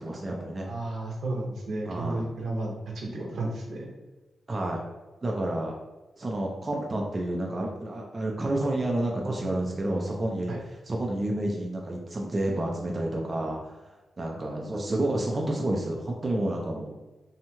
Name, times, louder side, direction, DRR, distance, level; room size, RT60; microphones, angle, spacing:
voice 1, 0.0-0.7 1.9-2.3 4.5-4.8 5.2-5.7 6.2-10.5 10.9-13.7 14.2-17.0, right 1 dB, 30° right, -1 dB, 0.4 m, -29 dB
voice 2, 0.7-3.9 10.5-10.6, right 2 dB, 70° right, -1 dB, 0.6 m, -33 dB
2.7 x 2.2 x 2.9 m, 1.1 s
wide cardioid pair, 110°, 0 cm